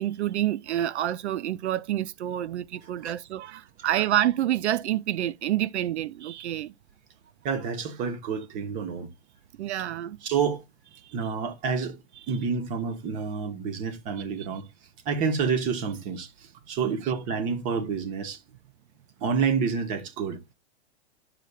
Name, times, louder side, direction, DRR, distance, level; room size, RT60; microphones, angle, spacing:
voice 1, 0.0-6.7 9.6-10.2 11.0-11.1 16.9-17.0, right 12 dB, 80° right, 0.6 m, -28 dB
voice 2, 7.4-9.1 10.2-10.6 11.1-12.0 12.3-14.6 15.0-18.4 19.2-20.5, right 6 dB, 25° right, 1.1 m, -29 dB
11.5 x 6.7 x 2.4 m
supercardioid pair, 165°, 33 cm